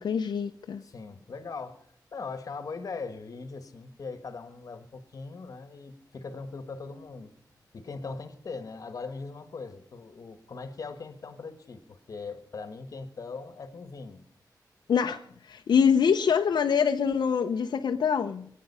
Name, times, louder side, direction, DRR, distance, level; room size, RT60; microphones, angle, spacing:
voice 1, 0.0-0.8 14.9-18.5, left 7 dB, 80° left, 5 dB, 0.7 m, -25 dB
voice 2, 0.8-1.8 2.1-7.3 7.7-14.2, left 4 dB, 50° left, 10 dB, 1.4 m, -40 dB
23.0 x 9.3 x 5.5 m, 0.67 s
wide cardioid pair, 175°, 7 cm